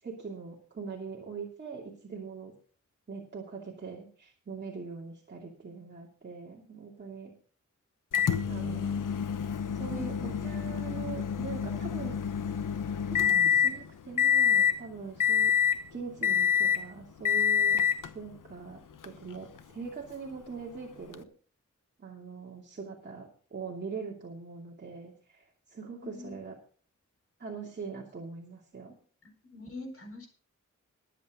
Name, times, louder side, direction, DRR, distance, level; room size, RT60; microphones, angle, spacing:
voice 1, 0.0-2.5 3.1-7.3 8.5-9.0 9.3-12.2 13.1-15.5 15.9-17.8 18.1-21.2 22.0-26.6 27.4-29.0, right 5 dB, 35° right, -3 dB, 2.7 m, -42 dB
Microwave oven, 8.1-13.8 14.2-14.8 15.2-15.8 16.2-16.9 17.2-18.1 19.0-19.1 21.1-21.2, left 8 dB, 85° left, 1.1 m, -27 dB
voice 2, 9.9-10.5 26.0-26.4 29.5-30.3, left 2 dB, 45° left, 4 dB, 4.5 m, -43 dB
21.5 x 8.4 x 3.8 m, 0.43 s
wide cardioid pair, 160°, 31 cm